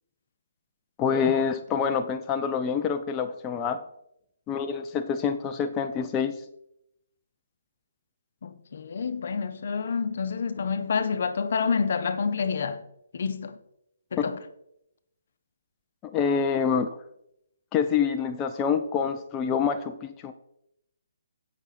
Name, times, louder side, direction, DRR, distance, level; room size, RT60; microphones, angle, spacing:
voice 1, 1.0-3.8 4.5-6.3 14.2-14.3 16.0-16.9 17.7-20.3, left 6 dB, 15° left, 0.5 m, -26 dB
voice 2, 8.4-12.8 13.1-13.6 14.1-14.4, left 5 dB, 55° left, 0.9 m, -28 dB
16.0 x 6.2 x 4.2 m
hypercardioid pair, 160°, 0 cm